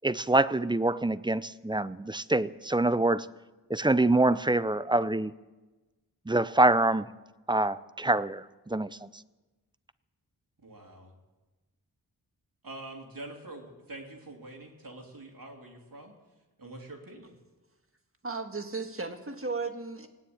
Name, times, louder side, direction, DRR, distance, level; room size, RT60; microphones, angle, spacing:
voice 1, 0.0-3.3 3.7-5.3 6.3-7.1 7.5-9.1, right 2 dB, 10° right, 16 dB, 0.5 m, -25 dB
voice 2, 10.6-11.1 12.6-16.1 16.6-17.3, right 2 dB, 60° right, 1 dB, 3.1 m, -45 dB
voice 3, 18.2-20.1, right 4 dB, 35° right, 6 dB, 1.6 m, -35 dB
17.5 x 9.5 x 8.6 m, 1.2 s
wide cardioid pair, 55°, 38 cm